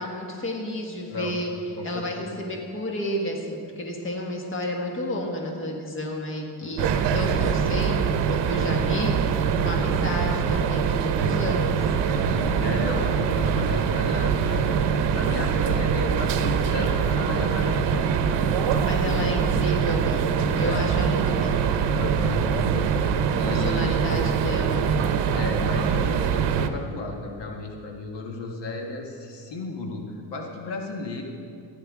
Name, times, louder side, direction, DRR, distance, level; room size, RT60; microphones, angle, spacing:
voice 1, 0.0-1.5 1.8-8.0 8.3-9.2 9.6-11.7 18.8-21.9 23.5-25.1, left 1 dB, 30° left, 1 dB, 1.5 m, -31 dB
voice 2, 1.8-2.3 6.6-6.8 12.1-14.8 15.1-19.3 20.6-20.9 22.0-24.1 25.3-31.2, left 3 dB, 75° left, 2 dB, 1.5 m, -34 dB
sound 1, 6.8-26.7, right 7 dB, 75° right, 0.8 m, -23 dB
15.0 x 10.0 x 3.6 m, 2.4 s
cardioid pair, 125°, 42 cm